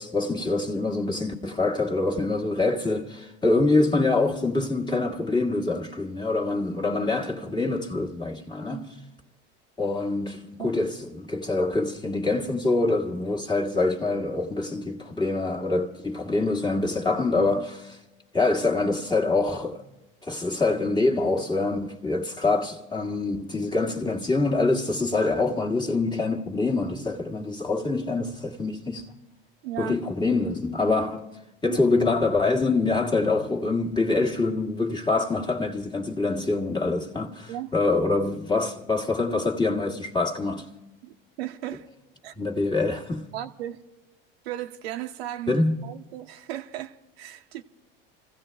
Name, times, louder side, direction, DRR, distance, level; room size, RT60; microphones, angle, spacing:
voice 1, 0.0-8.9 9.8-18.0 18.3-19.8 20.2-29.0 29.8-31.2 31.6-40.7 42.3-43.3 45.5-45.8, left 3 dB, 15° left, 1.6 m, -25 dB
voice 2, 29.6-30.1 31.7-31.8 37.5-37.7 41.0-41.9 42.2-42.3 43.3-43.8 44.4-47.6, right 12 dB, 85° right, 0.9 m, -36 dB
27.0 x 15.5 x 3.4 m
supercardioid pair, 110°, 30 cm